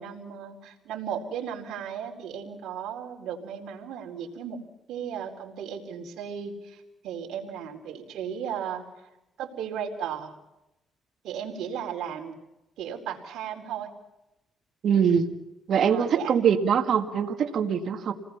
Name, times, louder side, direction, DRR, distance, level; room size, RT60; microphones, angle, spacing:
voice 1, 0.0-4.6 4.9-8.8 9.4-10.3 11.2-12.4 12.8-13.9 15.7-16.4, right 8 dB, 80° right, 0 dB, 4.3 m, -35 dB
voice 2, 14.8-15.3 15.7-18.1, right 7 dB, 65° right, 6 dB, 2.1 m, -23 dB
28.5 x 19.5 x 5.8 m, 0.92 s
cardioid pair, 90°, 0 cm